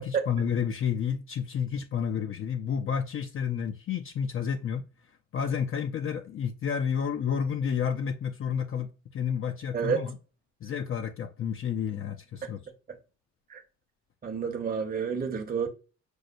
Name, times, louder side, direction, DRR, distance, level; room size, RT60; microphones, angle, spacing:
voice 1, 0.0-4.8 5.3-10.2 10.6-12.6, left 7 dB, 45° left, 0.5 m, -30 dB
voice 2, 14.2-15.7, right 6 dB, 30° right, 0.8 m, -29 dB
6.2 x 2.1 x 2.5 m
cardioid pair, 90°, 30 cm